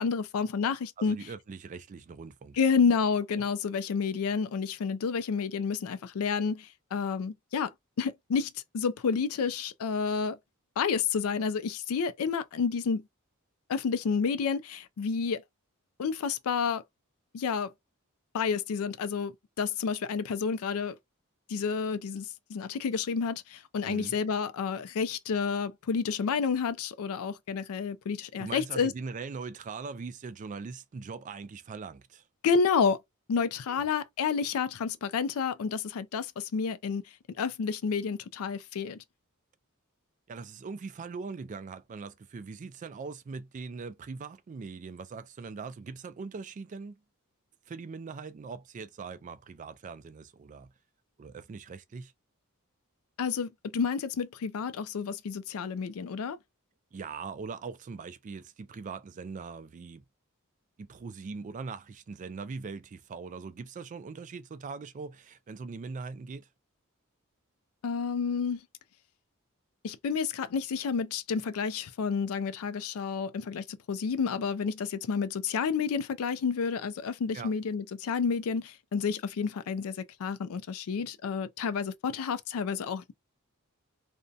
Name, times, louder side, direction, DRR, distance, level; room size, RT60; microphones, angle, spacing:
voice 1, 0.0-1.2 2.6-7.7 8.0-10.4 10.8-13.0 13.7-15.4 16.0-16.8 17.3-17.7 18.3-21.0 21.5-28.9 32.4-33.0 33.3-37.0 37.4-39.0 53.2-56.4 67.8-68.6 69.8-83.1, left 5 dB, 70° left, 0.4 m, -30 dB
voice 2, 1.0-2.6 23.8-24.2 28.4-32.2 33.7-33.8 40.3-47.0 47.7-50.7 51.2-52.1 56.9-60.0 60.8-66.5 77.3-77.5, right 4 dB, 35° right, 0.3 m, -41 dB
2.6 x 2.1 x 2.4 m
head